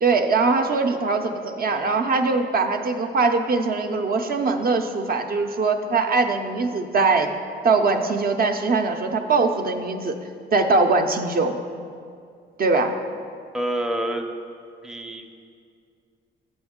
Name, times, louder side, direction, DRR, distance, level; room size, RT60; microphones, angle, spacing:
voice 1, 0.0-7.3 7.6-10.2 10.5-11.6 12.6-12.9, right 3 dB, 50° right, 5 dB, 0.5 m, -21 dB
voice 2, 13.5-14.3 14.8-15.3, right 1 dB, 5° right, 3 dB, 0.5 m, -27 dB
8.3 x 6.1 x 3.6 m, 2.3 s
cardioid pair, 90°, 20 cm